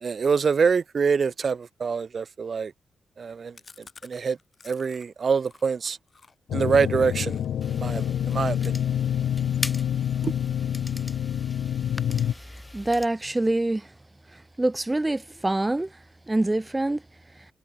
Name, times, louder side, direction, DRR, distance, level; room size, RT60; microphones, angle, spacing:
voice 1, 0.0-2.7 3.2-3.6 4.0-4.4 4.6-6.0 6.5-7.4 7.7-8.8 10.2-10.3, right 5 dB, 45° right, 0.4 m, -25 dB
Chewing mastication, 3.5-7.5 7.8-8.0 8.3-11.3 11.7-12.0 12.3-13.2 13.5-13.6 13.8-13.9 14.2-14.8, left 4 dB, 35° left, 7.5 m, -54 dB
sound 1, 6.5-12.3, left 9 dB, 80° left, 0.3 m, -27 dB
sound 2, 7.6-13.1, left 2 dB, 15° left, 2.4 m, -40 dB
voice 2, 12.7-13.9 14.3-16.0 16.3-17.0, right 2 dB, 15° right, 1.0 m, -25 dB
cardioid pair, 105°, 0 cm